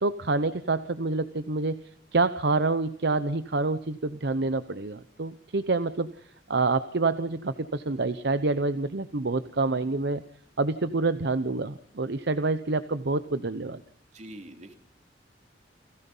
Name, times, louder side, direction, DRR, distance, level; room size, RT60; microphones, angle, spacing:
voice 1, 0.0-6.1 6.5-10.2 10.6-13.8, right 3 dB, 65° right, 12 dB, 0.9 m, -27 dB
voice 2, 14.1-14.7, right 1 dB, 40° right, 5 dB, 3.0 m, -44 dB
29.5 x 16.5 x 5.5 m, 0.65 s
head